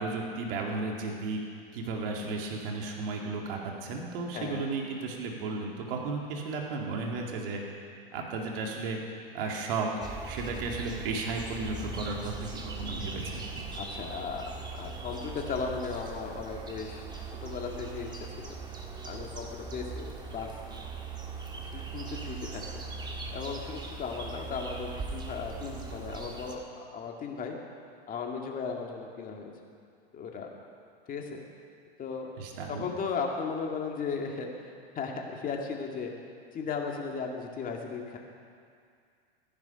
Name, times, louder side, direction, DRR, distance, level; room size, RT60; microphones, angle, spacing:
voice 1, 0.0-1.4 1.7-7.6 8.1-12.3 12.6-13.7 32.4-32.9, right 3 dB, 65° right, 0 dB, 2.2 m, -34 dB
voice 2, 4.3-4.7 13.7-14.5 14.8-17.1 17.4-18.6 19.0-20.5 21.7-22.8 23.3-26.6 26.9-27.6 28.1-29.5 30.1-30.5 31.1-31.4 32.0-32.4 32.7-36.1 36.5-38.2, left 5 dB, 25° left, 1 dB, 2.0 m, -36 dB
sound 1, 10.0-26.5, right 4 dB, 15° right, 1.5 m, -40 dB
14.5 x 10.5 x 5.8 m, 2.3 s
hypercardioid pair, 110°, 31 cm